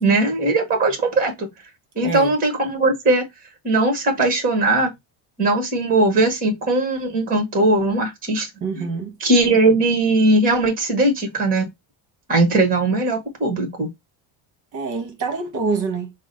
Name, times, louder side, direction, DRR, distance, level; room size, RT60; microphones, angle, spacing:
voice 1, 0.0-1.5 1.9-3.2 3.6-4.9 5.4-8.5 8.8-8.9 9.2-11.7 12.3-13.9, right 2 dB, 20° right, 1.2 m, -19 dB
voice 2, 8.6-9.1 14.7-16.1, right 4 dB, 40° right, 1.1 m, -26 dB
6.0 x 2.1 x 3.9 m
cardioid pair, 180°, 46 cm